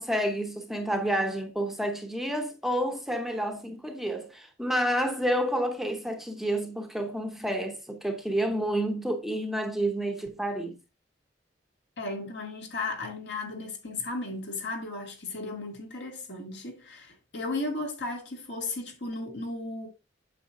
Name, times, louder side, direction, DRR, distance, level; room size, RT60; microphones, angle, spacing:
voice 1, 0.0-10.8, right 1 dB, ahead, 0.9 m, -29 dB
voice 2, 12.0-19.9, left 2 dB, 65° left, 2.3 m, -35 dB
8.3 x 6.7 x 2.7 m
head